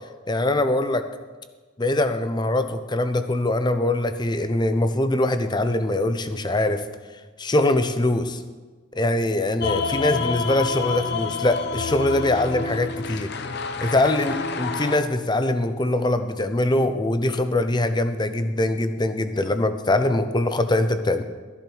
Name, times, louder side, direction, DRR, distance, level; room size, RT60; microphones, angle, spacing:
voice 1, 0.3-1.0 1.8-6.8 7.4-8.4 9.0-13.3 13.8-21.2, left 1 dB, 20° left, 9 dB, 0.6 m, -23 dB
sound 1, 9.6-15.0, left 5 dB, 55° left, 0.7 m, -28 dB
13.5 x 10.5 x 4.5 m, 1.4 s
head